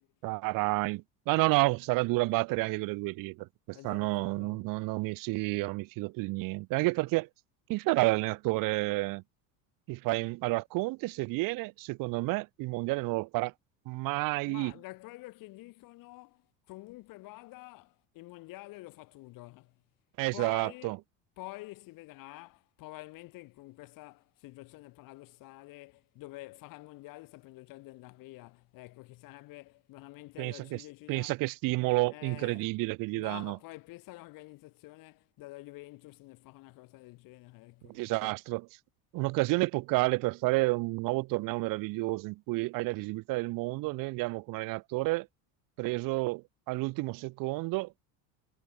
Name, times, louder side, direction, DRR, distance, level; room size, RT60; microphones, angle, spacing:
voice 1, 0.2-7.3 7.7-9.2 9.9-13.5 13.8-14.7 20.2-21.0 30.4-30.8 31.1-33.6 37.8-38.6 39.1-45.3 45.8-48.0, right 23 dB, 55° right, 1.6 m, -30 dB
voice 2, 3.7-4.7 14.5-19.8 20.3-20.9 21.4-31.4 32.1-32.7 33.1-38.3, left 20 dB, 55° left, 7.8 m, -48 dB
cardioid pair, 160°, 40 cm